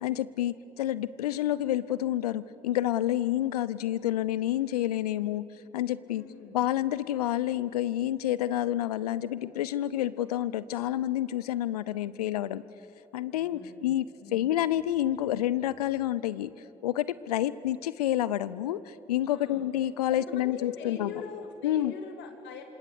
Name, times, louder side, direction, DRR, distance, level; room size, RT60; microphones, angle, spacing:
voice 1, 0.0-5.4 5.7-6.2 6.5-12.6 13.1-14.1 14.3-16.5 16.8-21.1 21.6-21.9, left 13 dB, 85° left, 18 dB, 0.6 m, -29 dB
voice 2, 6.1-6.6 13.3-13.9 14.2-14.5 19.3-19.7 20.1-22.6, left 5 dB, 65° left, 5 dB, 2.6 m, -43 dB
27.0 x 26.5 x 6.7 m, 2.9 s
figure-of-eight pair, 40°, 19 cm